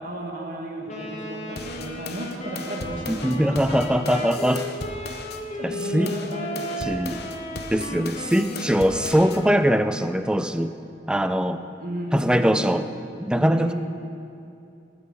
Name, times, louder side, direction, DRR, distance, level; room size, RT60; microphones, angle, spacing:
voice 1, 0.0-3.8 5.6-7.3 11.8-12.8 13.3-13.7, right 1 dB, 50° right, 0 dB, 2.0 m, -34 dB
Wind instrument woodwind instrument, 0.9-9.9, left 1 dB, 40° left, 1.4 m, -35 dB
sound 1, 1.6-5.4 5.8-9.4, left 3 dB, 60° left, 0.9 m, -37 dB
voice 2, 3.1-4.6 5.6-6.1 6.8-7.3 7.7-10.7 11.1-11.6 12.1-12.8 13.2-13.7, equal, 5° right, 9 dB, 0.4 m, -22 dB
20.0 x 9.5 x 4.4 m, 2.7 s
head